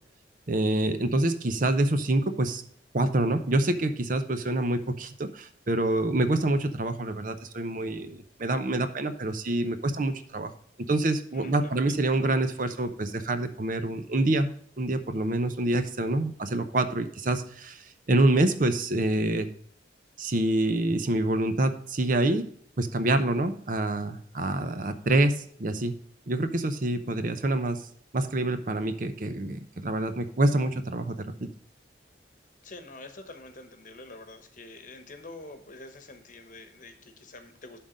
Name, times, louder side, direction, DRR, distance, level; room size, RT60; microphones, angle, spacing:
voice 1, 0.5-2.6 2.9-10.5 10.9-14.5 14.8-19.5 20.2-22.5 22.8-25.9 26.3-27.8 28.1-31.5, right 2 dB, 45° right, 9 dB, 0.7 m, -26 dB
voice 2, 11.3-12.3 32.6-37.8, left 2 dB, 45° left, 7 dB, 1.1 m, -46 dB
11.5 x 3.8 x 5.1 m, 0.62 s
head